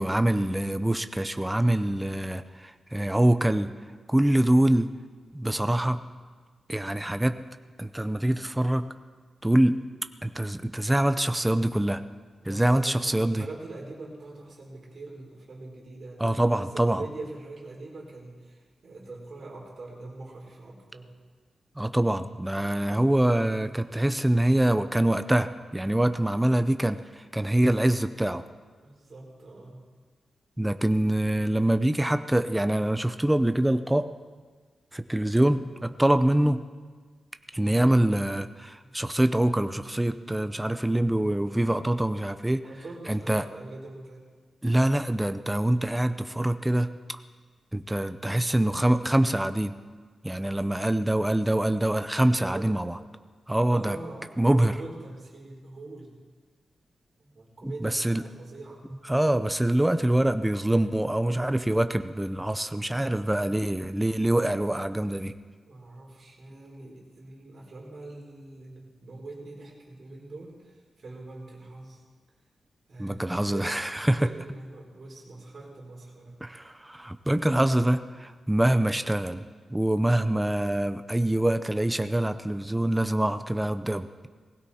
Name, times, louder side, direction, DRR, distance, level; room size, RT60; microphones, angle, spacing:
voice 1, 0.0-3.7 4.1-4.9 5.3-6.0 6.7-7.4 7.8-8.9 9.4-9.8 10.2-12.0 12.5-13.5 16.2-17.0 21.8-27.0 27.3-28.4 30.6-34.1 34.9-36.7 37.5-42.6 43.1-43.5 44.6-46.9 47.7-49.8 50.2-53.0 53.5-54.0 54.4-54.7 57.6-58.2 59.1-65.3 73.0-74.3 76.4-79.4 79.7-84.3, right 1 dB, 5° right, 10 dB, 0.6 m, -25 dB
voice 2, 12.4-21.1 28.8-29.8 42.6-44.2 52.3-52.8 53.7-56.1 57.2-58.8 65.6-72.0 72.9-73.8 74.2-76.4, right 2 dB, 40° right, -3 dB, 4.2 m, -43 dB
19.5 x 16.5 x 4.3 m, 1.5 s
wide cardioid pair, 165°, 0 cm